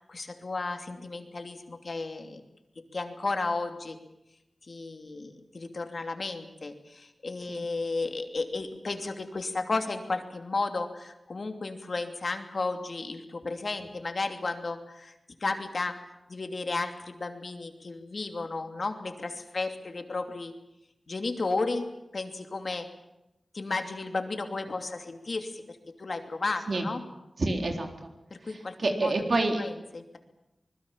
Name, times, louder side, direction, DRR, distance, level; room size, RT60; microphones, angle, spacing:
voice 1, 0.0-2.4 2.9-4.0 4.7-15.1 15.4-16.0 16.3-20.5 21.1-21.9 22.1-22.9 23.5-27.0 28.5-29.1 29.6-30.2, left 3 dB, 55° left, 6 dB, 2.8 m, -33 dB
voice 2, 27.4-28.1 28.5-29.6, right 2 dB, 60° right, 4 dB, 3.8 m, -28 dB
25.5 x 21.0 x 7.4 m, 0.92 s
wide cardioid pair, 95°, 0 cm